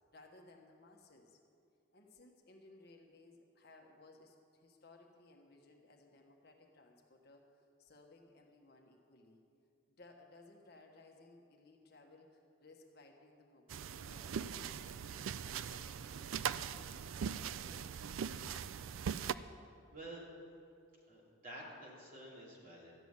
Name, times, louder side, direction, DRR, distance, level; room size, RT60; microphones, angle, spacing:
voice 1, 0.1-1.6 1.9-9.4 9.9-15.3 15.7-17.9 18.6-19.0, left 2 dB, 50° left, 2 dB, 1.3 m, -61 dB
sound 1, 13.7-19.3, right 7 dB, 70° right, 0.4 m, -41 dB
voice 2, 19.9-20.3 21.1-22.9, right 1 dB, 40° right, -4 dB, 3.0 m, -50 dB
13.0 x 7.0 x 9.6 m, 2.5 s
head